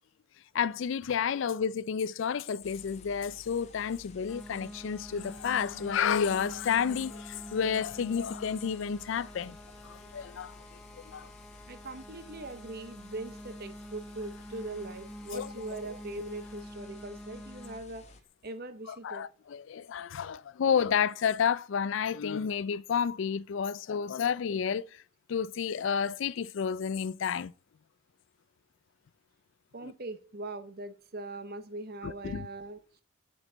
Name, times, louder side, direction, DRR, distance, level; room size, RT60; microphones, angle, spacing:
voice 1, 0.5-9.6 9.8-10.6 11.1-11.3 15.3-15.5 18.9-25.0 25.3-27.5 29.8-29.9 32.0-32.5, left 7 dB, 60° left, 0.3 m, -30 dB
sound 1, 2.6-18.2, left 2 dB, 30° left, 0.9 m, -54 dB
sound 2, 4.3-17.8, equal, 5° left, 0.5 m, -47 dB
Water tap faucet / Bathtub (filling or washing), 5.1-16.7 17.7-17.8, left 5 dB, 85° left, 1.7 m, -60 dB
voice 2, 11.7-18.0 18.4-19.3 29.7-32.8, right 2 dB, 45° right, 0.9 m, -41 dB
9.8 x 6.4 x 3.9 m
head